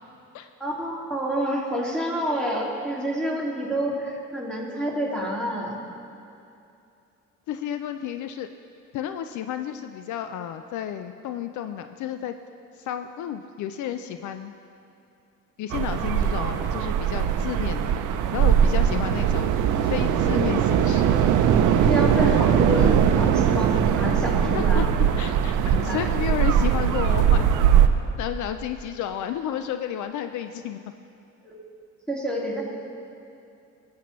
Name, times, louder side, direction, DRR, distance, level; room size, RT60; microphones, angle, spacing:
voice 1, 0.6-5.8 18.6-18.7 21.8-24.9 25.7-26.0 31.4-31.6 32.1-32.6, equal, 5° left, -4 dB, 2.2 m, -28 dB
voice 2, 7.5-8.5 8.9-12.3 12.8-14.5 15.6-18.0 18.3-21.3 23.4-23.5 24.5-24.9 25.2-27.5 28.2-30.8, left 10 dB, 75° left, 8 dB, 0.4 m, -31 dB
sound 1, 15.7-27.9, right 9 dB, 80° right, 0.6 m, -20 dB
16.5 x 7.6 x 3.1 m, 2.7 s
cardioid pair, 90°, 30 cm